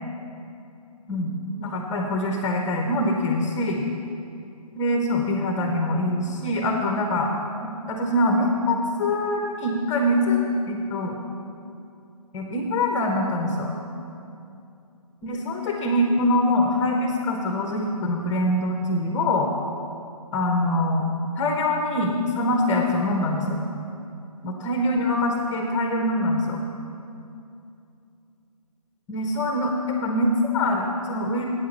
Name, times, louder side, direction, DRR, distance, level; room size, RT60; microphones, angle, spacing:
voice 1, 1.6-3.8 4.7-7.3 7.9-11.2 12.3-13.7 15.2-19.5 20.3-21.0 21.4-23.6 24.4-26.6 29.1-31.4, left 1 dB, 15° left, 2 dB, 0.8 m, -24 dB
8.6 x 8.4 x 7.1 m, 2.6 s
figure-of-eight pair, 140°, 20 cm